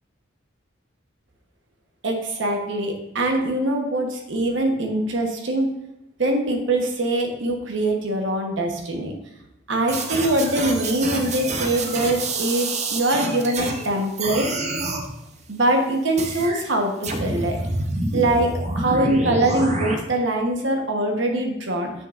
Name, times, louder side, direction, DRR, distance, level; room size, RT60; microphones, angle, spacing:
voice 1, 2.0-5.7 6.2-9.1 9.7-14.5 15.5-17.6 18.1-18.5 18.7-21.9, right 1 dB, 65° right, 2 dB, 1.1 m, -23 dB
sound 1, 9.9-13.9 14.2-15.1 16.2-16.6 17.0-20.0, right 2 dB, 35° right, 0.7 m, -27 dB
7.5 x 6.4 x 2.5 m, 0.91 s
head